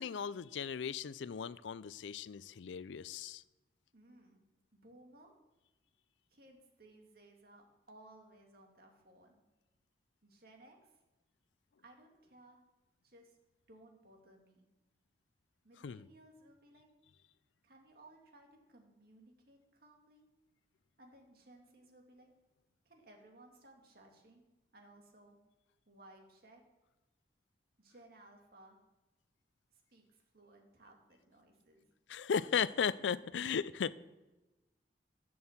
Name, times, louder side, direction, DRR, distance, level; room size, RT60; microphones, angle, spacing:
voice 1, 0.0-3.4 15.8-16.0 32.1-33.9, left 7 dB, 85° left, 18 dB, 0.4 m, -36 dB
voice 2, 3.9-4.4 4.7-5.3 6.3-9.4 10.2-10.9 11.8-12.6 13.0-13.4 13.7-14.7 15.6-16.9 17.6-20.3 21.0-22.3 22.9-24.4 24.7-25.4 25.9-26.6 27.8-28.8 29.7-31.9, right 1 dB, 55° right, 2 dB, 2.1 m, -60 dB
11.0 x 6.2 x 7.2 m, 1.1 s
head